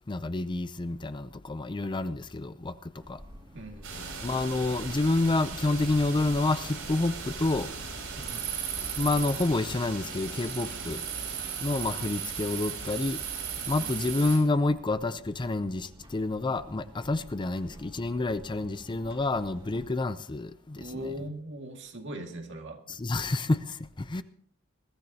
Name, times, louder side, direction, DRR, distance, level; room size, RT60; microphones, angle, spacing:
voice 1, 0.1-3.2 4.2-7.7 9.0-11.1 11.6-13.2 13.7-21.1 22.9-24.2, left 2 dB, 20° left, 0.5 m, -29 dB
sound 1, 3.0-19.9, equal, 25° right, 2.2 m, -50 dB
voice 2, 3.5-4.1 8.2-8.5 13.6-13.9 20.8-23.0, equal, 55° right, 2.1 m, -40 dB
sound 2, 3.8-14.4, right 6 dB, 75° right, 6.1 m, -37 dB
21.5 x 13.5 x 2.8 m
head